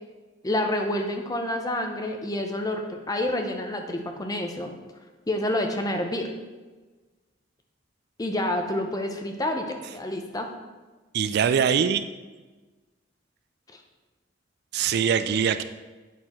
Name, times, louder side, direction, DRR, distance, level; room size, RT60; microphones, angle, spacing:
voice 1, 0.4-4.7 5.3-6.3 8.2-10.5 13.7-13.8, left 1 dB, 20° left, 4 dB, 0.7 m, -28 dB
voice 2, 11.1-12.0 14.7-15.6, right 7 dB, 55° right, 11 dB, 0.3 m, -22 dB
8.2 x 4.4 x 4.3 m, 1.3 s
head